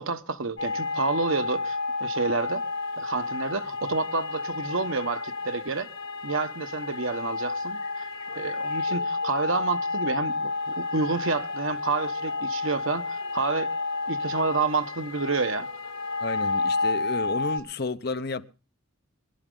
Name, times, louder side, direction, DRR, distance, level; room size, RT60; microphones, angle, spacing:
voice 1, 0.0-2.6 3.0-5.9 6.2-8.0 8.3-13.7 14.1-15.7, right 4 dB, 75° right, 1.1 m, -29 dB
sound 1, 0.6-17.6, left 3 dB, 70° left, 3.6 m, -30 dB
voice 2, 16.2-18.4, left 3 dB, 50° left, 0.8 m, -31 dB
22.5 x 11.0 x 3.8 m
head